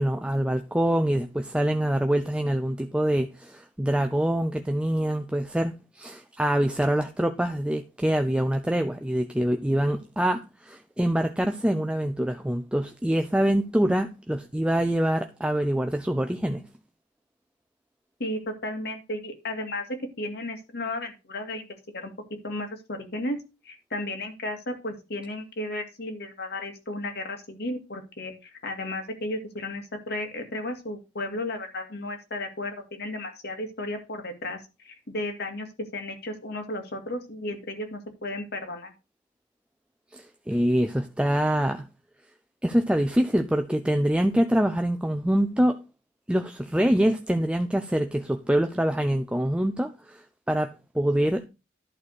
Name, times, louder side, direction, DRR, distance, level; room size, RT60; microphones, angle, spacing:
voice 1, 0.0-16.6 40.1-41.9 42.6-45.8 46.3-51.5, right 1 dB, 5° right, 0.5 m, -25 dB
voice 2, 18.2-21.7 21.9-22.1 22.4-23.4 23.6-35.7 35.9-38.9, left 1 dB, 60° left, 2.2 m, -34 dB
11.5 x 4.1 x 6.5 m
head